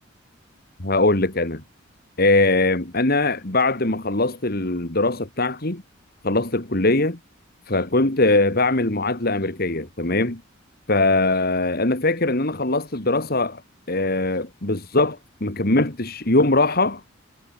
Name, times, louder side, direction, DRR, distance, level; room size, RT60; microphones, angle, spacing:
voice 1, 0.8-1.6 2.2-5.8 6.2-7.2 7.7-10.4 10.9-13.6 13.9-17.0, left 2 dB, 50° left, 2.4 m, -21 dB
head